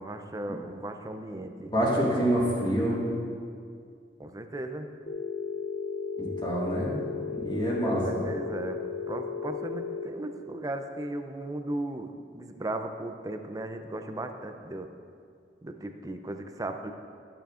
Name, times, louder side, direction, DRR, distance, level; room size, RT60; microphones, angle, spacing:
voice 1, 0.0-1.7 4.2-4.9 7.9-8.8 9.1-14.9 15.6-16.9, right 1 dB, 20° right, 6 dB, 0.4 m, -36 dB
voice 2, 1.7-3.0 6.2-7.0 7.3-8.2, equal, 30° left, -6 dB, 1.8 m, -27 dB
Telephone, 5.1-10.1, left 6 dB, 45° left, 0.5 m, -35 dB
13.0 x 7.0 x 2.5 m, 2.2 s
head